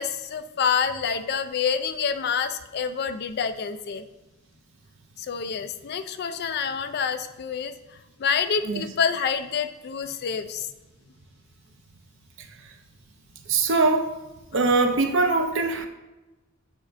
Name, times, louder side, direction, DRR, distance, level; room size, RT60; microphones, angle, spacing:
voice 1, 0.0-4.0 5.2-7.7 8.2-10.7, left 6 dB, 50° left, 10 dB, 0.4 m, -27 dB
voice 2, 13.5-14.1 14.5-15.9, right 3 dB, 60° right, 5 dB, 0.7 m, -22 dB
8.8 x 4.3 x 2.5 m, 1.1 s
head